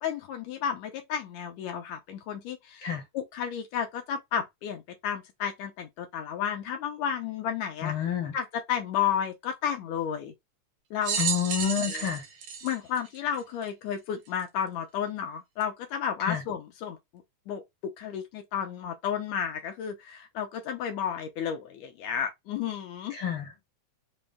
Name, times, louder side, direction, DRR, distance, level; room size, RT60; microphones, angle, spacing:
voice 1, 0.0-8.0 8.3-10.3 10.9-11.2 11.8-12.0 12.6-17.0 17.5-23.2, left 8 dB, 80° left, 1.9 m, -32 dB
voice 2, 7.8-8.3 11.2-12.2 16.2-16.4 23.1-23.7, left 8 dB, 60° left, 1.5 m, -29 dB
sound 1, 11.0-13.7 14.4-14.5 15.6-15.7, right 7 dB, 75° right, 2.2 m, -32 dB
5.3 x 2.0 x 3.5 m
omnidirectional pair, 3.3 m